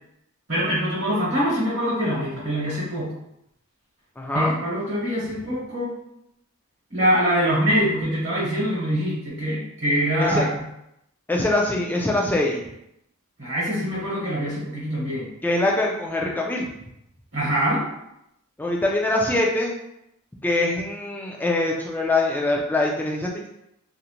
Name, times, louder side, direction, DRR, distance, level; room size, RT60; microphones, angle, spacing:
voice 1, 0.5-3.1 4.3-5.9 6.9-10.5 13.4-15.3 17.3-17.9, equal, 55° right, -7 dB, 0.9 m, -24 dB
voice 2, 4.2-4.5 10.2-10.5 11.3-12.6 15.4-16.7 18.6-19.7 20.4-23.5, left 2 dB, 10° left, -1 dB, 0.3 m, -23 dB
2.5 x 2.1 x 2.8 m, 0.80 s
head